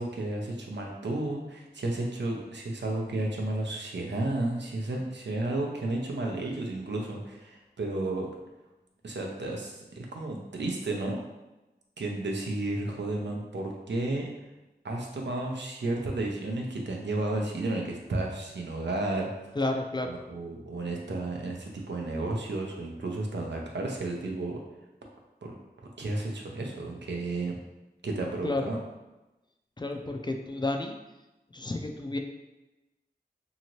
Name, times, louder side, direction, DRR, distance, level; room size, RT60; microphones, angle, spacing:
voice 1, 0.0-8.3 9.0-11.2 12.0-14.3 14.8-19.3 20.0-24.6 25.4-27.6 28.0-28.8, right 2 dB, 90° right, 0 dB, 0.5 m, -32 dB
voice 2, 19.6-20.2 28.4-28.7 29.8-31.0 31.5-32.2, left 2 dB, 25° left, 4 dB, 0.3 m, -31 dB
2.8 x 2.6 x 2.9 m, 1.0 s
wide cardioid pair, 50°, 18 cm